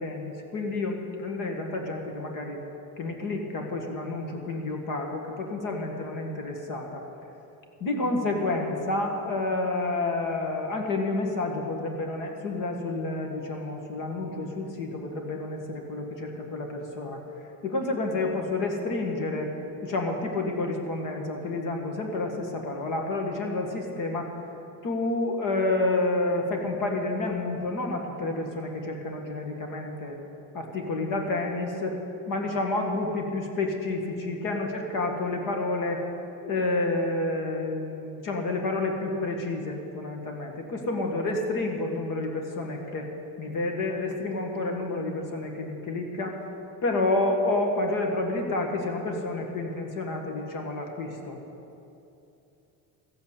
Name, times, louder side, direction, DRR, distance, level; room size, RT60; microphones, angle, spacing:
voice 1, 0.0-2.6 3.0-7.0 7.8-17.2 17.6-19.5 19.8-24.3 24.8-30.2 30.5-32.0 32.3-36.0 36.4-43.1 43.4-46.4 46.8-51.4, left 2 dB, 55° left, 2 dB, 1.9 m, -29 dB
14.0 x 8.4 x 8.4 m, 2.8 s
cardioid pair, 155°, 39 cm